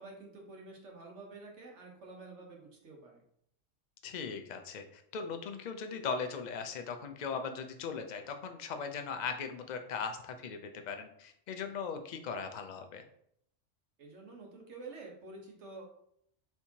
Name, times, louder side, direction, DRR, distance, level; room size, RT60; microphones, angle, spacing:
voice 1, 0.0-3.2 14.0-15.9, right 3 dB, 65° right, 0 dB, 1.3 m, -49 dB
voice 2, 4.0-10.6 10.9-13.0, left 5 dB, 60° left, 7 dB, 0.4 m, -39 dB
4.4 x 3.4 x 2.8 m, 0.70 s
omnidirectional pair, 1.3 m